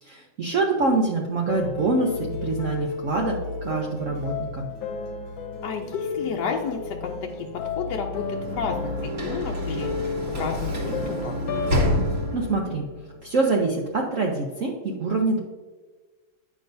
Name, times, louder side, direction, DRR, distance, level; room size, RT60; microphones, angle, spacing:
voice 1, 0.0-4.7 12.3-12.9 13.2-15.4, right 3 dB, 60° right, 0 dB, 0.9 m, -25 dB
sound 1, 1.5-13.6, left 4 dB, 90° left, 1.6 m, -32 dB
voice 2, 5.6-9.9 10.3-11.4, left 5 dB, 70° left, 1 dB, 1.1 m, -32 dB
Sliding door / Slam, 8.0-12.7, equal, 40° right, 1.3 m, -29 dB
9.1 x 6.2 x 2.6 m, 1.3 s
omnidirectional pair, 2.1 m